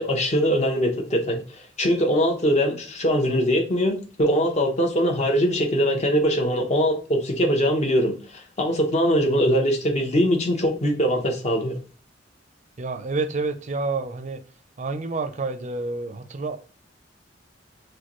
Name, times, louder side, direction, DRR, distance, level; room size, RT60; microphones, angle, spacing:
voice 1, 0.0-1.4 1.8-11.8, equal, 40° left, 0.9 m, -22 dB
voice 2, 12.8-14.4 14.8-16.6, right 3 dB, 40° right, 0.5 m, -28 dB
6.4 x 2.2 x 3.0 m
head